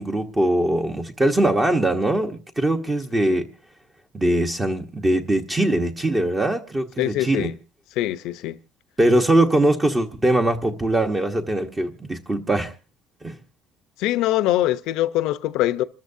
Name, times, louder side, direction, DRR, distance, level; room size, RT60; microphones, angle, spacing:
voice 1, 0.0-3.5 4.1-7.5 9.0-12.7 13.2-13.4, right 1 dB, 15° right, 1.2 m, -21 dB
voice 2, 7.0-7.5 8.0-8.6 14.0-15.8, left 14 dB, 70° left, 0.8 m, -23 dB
28.0 x 13.5 x 2.7 m
cardioid pair, 145°, 0 cm